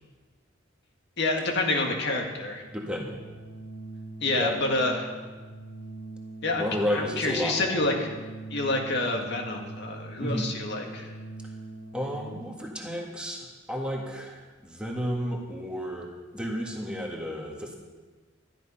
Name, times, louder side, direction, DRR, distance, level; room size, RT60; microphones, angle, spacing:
voice 1, 1.2-2.6 4.2-5.1 6.4-8.1 8.5-11.1, left 2 dB, 60° left, 2 dB, 2.0 m, -28 dB
Organ, 2.5-12.8, right 2 dB, 30° left, 2.1 m, -43 dB
voice 2, 2.7-3.2 4.3-4.5 6.5-7.8 10.2-10.5 11.9-16.1 16.3-17.8, equal, 5° right, -1 dB, 1.8 m, -32 dB
13.0 x 11.0 x 5.6 m, 1.3 s
head